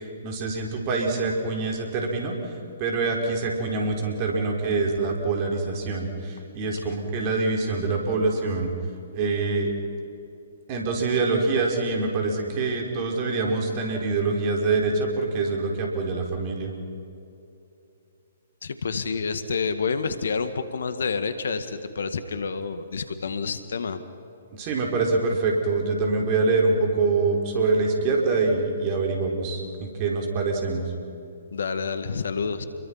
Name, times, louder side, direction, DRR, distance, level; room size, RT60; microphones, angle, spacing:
voice 1, 0.2-2.3 2.8-8.7 9.1-9.7 10.7-16.7 24.6-30.8, right 3 dB, 35° right, 1 dB, 4.9 m, -25 dB
voice 2, 18.6-24.0 31.5-32.7, left 5 dB, 65° left, 10 dB, 1.8 m, -29 dB
29.5 x 22.5 x 5.9 m, 2.8 s
figure-of-eight pair, 125°, 0 cm